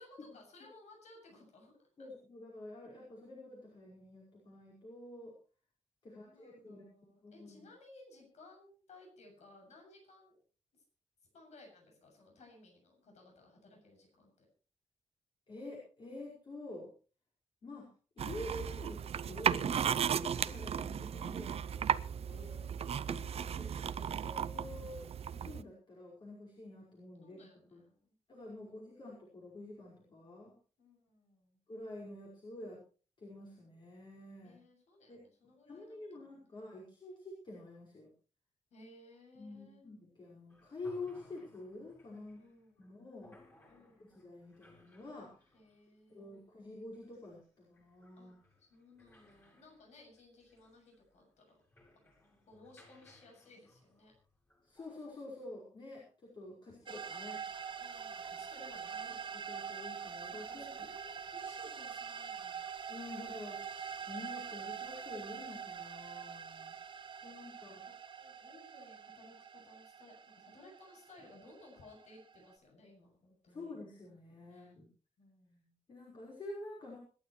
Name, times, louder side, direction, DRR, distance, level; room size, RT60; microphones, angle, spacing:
voice 1, 0.0-2.1 6.1-10.4 11.3-14.5 22.3-23.3 27.2-28.2 28.6-29.1 30.8-31.6 34.4-36.0 36.3-36.6 38.7-39.8 42.4-42.8 43.7-44.1 45.5-46.4 48.2-48.3 48.7-51.6 52.5-54.1 57.8-59.2 60.3-62.7 67.6-73.7 74.5-74.7 75.2-75.8, left 2 dB, 75° left, 1 dB, 7.3 m, -59 dB
voice 2, 2.0-5.3 6.0-6.8 7.2-7.6 15.5-16.9 17.6-17.9 18.2-22.5 23.1-25.0 25.3-27.8 28.3-30.6 31.7-32.8 33.2-34.6 35.1-35.2 35.7-38.1 39.4-42.4 42.8-43.4 44.0-45.3 46.1-48.4 54.6-57.4 59.3-60.9 62.9-63.7 64.1-66.8 67.2-67.8 73.5-74.9 75.9-77.0, left 2 dB, 45° left, -3 dB, 5.2 m, -48 dB
sound 1, 18.2-25.6, right 8 dB, 60° right, 0.6 m, -35 dB
sound 2, 40.5-55.2, left 1 dB, 20° left, 5.6 m, -65 dB
sound 3, 56.9-72.5, right 7 dB, 45° right, 1.8 m, -45 dB
26.0 x 11.5 x 3.2 m, 0.37 s
wide cardioid pair, 170°, 12 cm